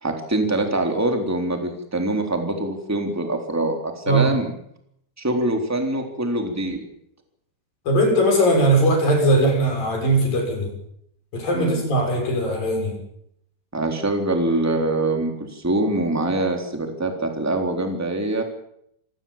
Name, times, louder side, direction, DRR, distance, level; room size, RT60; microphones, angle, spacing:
voice 1, 0.0-4.5 5.2-6.8 11.5-11.8 13.7-18.4, right 2 dB, 5° right, 3 dB, 2.4 m, -24 dB
voice 2, 7.9-10.7 11.3-13.0, right 1 dB, 45° left, 2 dB, 7.8 m, -19 dB
26.5 x 18.0 x 7.4 m, 0.73 s
omnidirectional pair, 6.0 m